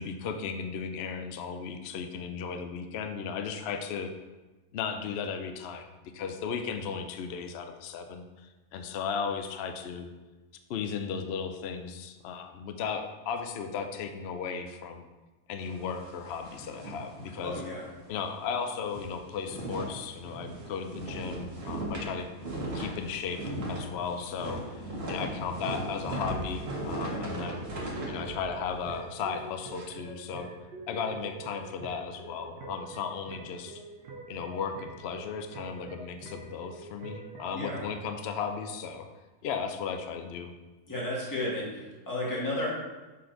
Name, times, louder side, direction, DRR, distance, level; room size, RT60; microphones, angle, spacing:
voice 1, 0.0-4.1 4.7-5.9 6.1-10.1 10.7-15.1 15.5-17.6 18.1-22.3 22.7-27.7 28.1-30.5 30.9-33.8 34.3-39.1 39.4-40.5, left 6 dB, 80° left, 6 dB, 0.5 m, -35 dB
sound 1, 15.6-17.9 18.2-18.3 18.7-29.8, right 1 dB, 40° right, 1.5 m, -38 dB
voice 2, 17.3-17.9 37.5-37.8 40.9-42.7, left 1 dB, 10° left, -6 dB, 1.5 m, -33 dB
sound 2, 26.3-38.0, right 3 dB, 85° right, 1.4 m, -45 dB
6.7 x 4.2 x 3.8 m, 1.2 s
omnidirectional pair, 1.8 m